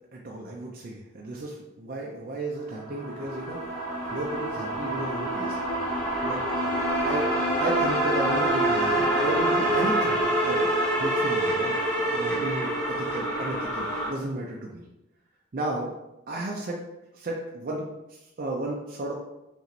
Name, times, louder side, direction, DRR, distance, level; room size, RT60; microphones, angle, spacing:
voice 1, 0.1-3.6 4.1-6.5 7.0-10.6 11.0-11.8 12.1-14.8 15.5-15.9 16.3-16.8 17.1-19.1, right 1 dB, 45° right, -2 dB, 0.4 m, -33 dB
sound 1, 2.8-14.1, right 1 dB, 5° left, 1.1 m, -26 dB
5.3 x 2.5 x 3.1 m, 0.93 s
head